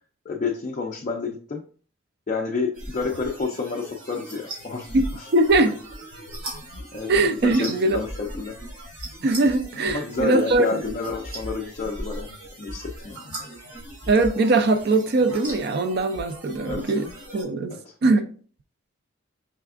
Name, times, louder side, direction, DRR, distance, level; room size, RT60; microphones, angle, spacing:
voice 1, 0.3-1.6 2.3-5.3 6.9-7.1 7.4-8.6 9.9-12.3 12.6-13.3 16.6-16.9 17.7-17.9, left 4 dB, 35° left, 0.3 m, -29 dB
flashlight click on and off, 2.7-17.4, right 1 dB, 85° right, 1.9 m, -38 dB
voice 2, 5.3-5.8 7.1-8.0 9.2-10.8 14.1-17.1 17.3-18.3, right 2 dB, 50° right, 0.4 m, -21 dB
4.8 x 3.4 x 2.4 m
head